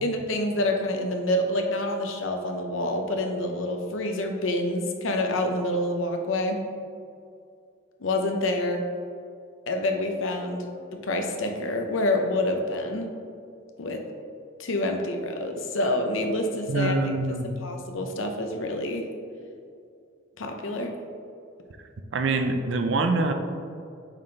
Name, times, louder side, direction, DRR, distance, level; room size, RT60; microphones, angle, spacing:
voice 1, 0.0-6.6 8.0-8.9 9.7-13.1 13.8-14.0 14.6-17.0 17.4-19.1 20.4-20.9, left 1 dB, 75° left, 3 dB, 0.7 m, -27 dB
voice 2, 16.7-17.6 22.1-23.3, right 3 dB, 60° right, 6 dB, 0.5 m, -25 dB
7.2 x 4.2 x 3.3 m, 2.4 s
head